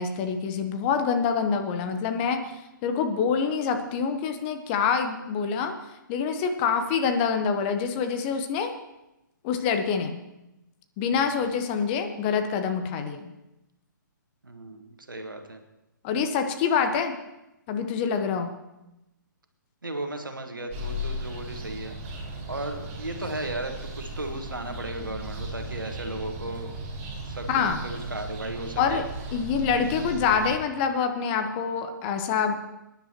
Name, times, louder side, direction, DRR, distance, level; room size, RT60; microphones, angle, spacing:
voice 1, 0.0-5.7 6.1-8.7 9.4-10.2 11.0-13.3 16.0-17.1 17.7-18.5 27.5-27.8 28.8-29.0 29.3-32.6, left 6 dB, 30° left, 7 dB, 1.1 m, -26 dB
voice 2, 14.4-15.6 19.8-22.2 22.5-26.7 27.2-29.0, right 2 dB, 80° right, 5 dB, 1.7 m, -35 dB
sound 1, 20.7-30.6, right 1 dB, 30° right, 5.6 m, -36 dB
22.5 x 10.5 x 3.0 m, 0.95 s
figure-of-eight pair, 125°, 11 cm